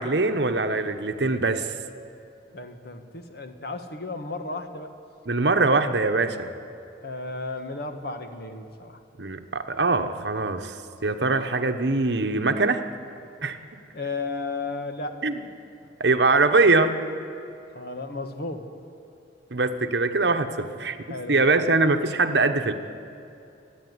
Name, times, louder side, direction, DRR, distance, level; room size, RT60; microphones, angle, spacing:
voice 1, 0.0-1.7 5.3-6.5 9.2-12.8 13.4-13.6 15.2-15.3 16.0-16.9 19.5-21.0 21.3-22.7, right 3 dB, 65° right, 7 dB, 1.1 m, -22 dB
voice 2, 2.5-4.9 7.0-9.0 13.9-15.2 17.7-18.7 20.6-20.8 21.1-21.6, left 3 dB, 60° left, 7 dB, 1.4 m, -34 dB
27.0 x 10.0 x 9.5 m, 2.6 s
head